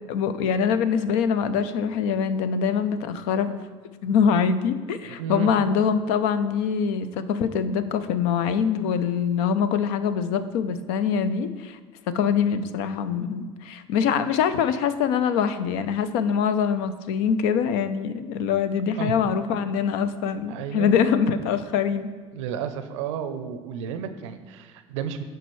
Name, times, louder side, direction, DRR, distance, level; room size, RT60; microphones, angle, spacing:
voice 1, 0.1-3.6 4.0-11.8 12.1-22.1, left 7 dB, 70° left, 12 dB, 0.5 m, -24 dB
voice 2, 5.0-5.5 19.0-19.2 20.5-20.9 22.3-25.2, right 8 dB, 80° right, 10 dB, 0.5 m, -32 dB
9.6 x 4.7 x 3.1 m, 1.5 s
hypercardioid pair, 70°, 16 cm